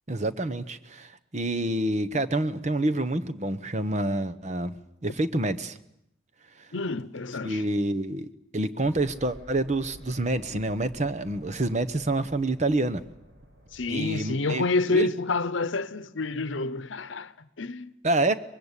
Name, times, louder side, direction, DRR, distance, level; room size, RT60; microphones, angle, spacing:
voice 1, 0.1-4.7 5.0-5.8 7.4-8.3 8.5-13.0 13.9-14.6 14.9-15.1 18.0-18.3, right 2 dB, 35° right, 0.9 m, -27 dB
voice 2, 6.7-7.7 13.7-17.9, left 3 dB, 80° left, 0.9 m, -28 dB
sound 1, 8.8-14.0, equal, 65° right, 7.3 m, -50 dB
24.5 x 21.5 x 8.3 m
head